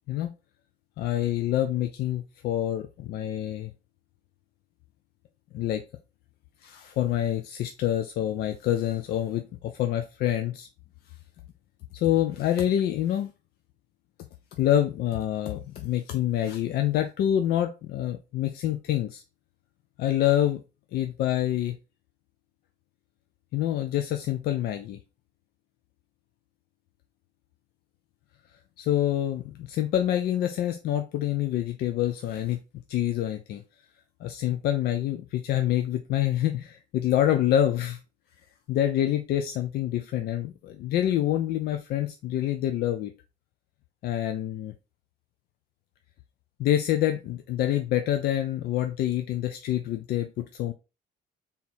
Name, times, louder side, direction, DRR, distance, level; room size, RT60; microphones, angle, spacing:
voice 1, 1.0-3.7 5.5-5.8 6.6-10.7 12.0-13.3 14.6-19.2 20.0-20.6 20.9-21.8 23.5-25.0 28.8-32.6 32.9-33.6 34.2-38.0 38.7-43.1 44.0-44.7 46.6-50.7, left 12 dB, 70° left, 7 dB, 0.5 m, -26 dB
3.5 x 2.8 x 4.1 m, 0.29 s
cardioid pair, 110°, 17 cm